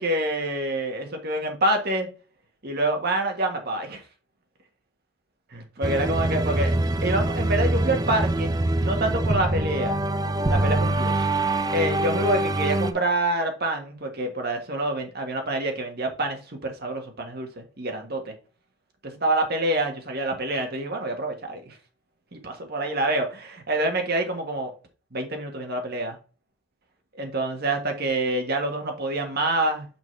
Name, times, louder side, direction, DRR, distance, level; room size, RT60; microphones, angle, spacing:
voice 1, 0.0-2.1 2.6-4.0 5.5-10.0 10.5-18.3 19.0-21.8 22.3-24.7 25.1-26.2 27.1-29.9, right 2 dB, 55° right, 1.6 m, -27 dB
sound 1, 5.8-12.9, right 1 dB, 20° right, 0.4 m, -24 dB
6.0 x 3.7 x 4.5 m
head